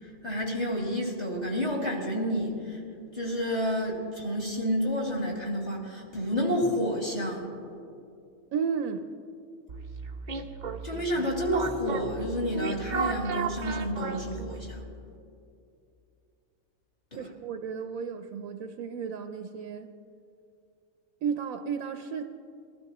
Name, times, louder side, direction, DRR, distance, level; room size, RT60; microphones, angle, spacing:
voice 1, 0.0-2.8 3.1-7.5 10.8-14.8 17.1-17.3, equal, 30° left, -4 dB, 2.6 m, -30 dB
voice 2, 8.5-9.1 17.2-19.9 21.2-22.2, right 6 dB, 80° right, 7 dB, 1.1 m, -33 dB
sound 1, 9.7-14.8, right 5 dB, 45° right, 0.6 m, -35 dB
21.0 x 13.0 x 3.0 m, 2.6 s
omnidirectional pair, 1.5 m